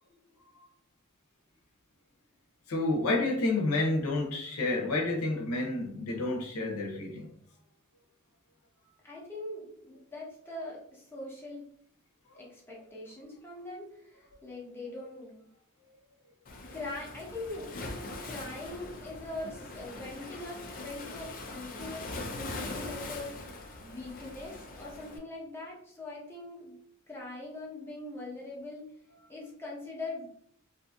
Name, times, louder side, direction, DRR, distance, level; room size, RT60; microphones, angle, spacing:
voice 1, 2.7-7.3, left 2 dB, 90° left, 0 dB, 0.7 m, -29 dB
voice 2, 9.0-11.6 12.3-15.5 16.7-17.7 18.2-23.4 23.8-26.8 27.1-28.9 29.3-30.3, left 2 dB, 10° left, -5 dB, 0.7 m, -42 dB
Waves surf, 16.5-25.2, left 2 dB, 40° left, 0.4 m, -42 dB
2.6 x 2.6 x 2.3 m, 0.68 s
head